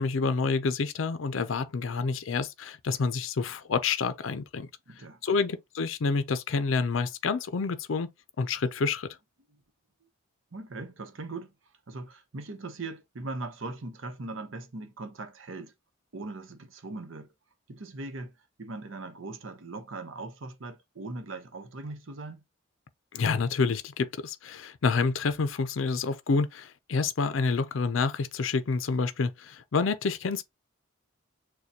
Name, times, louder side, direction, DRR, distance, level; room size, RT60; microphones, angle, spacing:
voice 1, 0.0-4.7 5.2-8.1 8.4-9.1 23.1-30.4, left 4 dB, 70° left, 0.5 m, -28 dB
voice 2, 4.9-5.4 10.5-11.5 11.9-15.7 16.1-17.3 17.7-22.4, right 2 dB, 75° right, 0.8 m, -40 dB
6.5 x 2.2 x 2.8 m
head